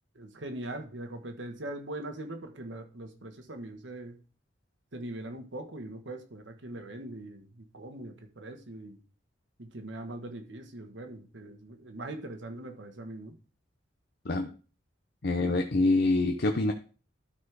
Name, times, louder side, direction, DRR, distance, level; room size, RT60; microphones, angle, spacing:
voice 1, 0.1-4.2 4.9-9.0 9.6-13.4, right 1 dB, 75° right, 5 dB, 1.4 m, -41 dB
voice 2, 15.2-16.7, left 2 dB, 55° left, 5 dB, 0.7 m, -25 dB
12.5 x 4.3 x 4.7 m, 0.37 s
head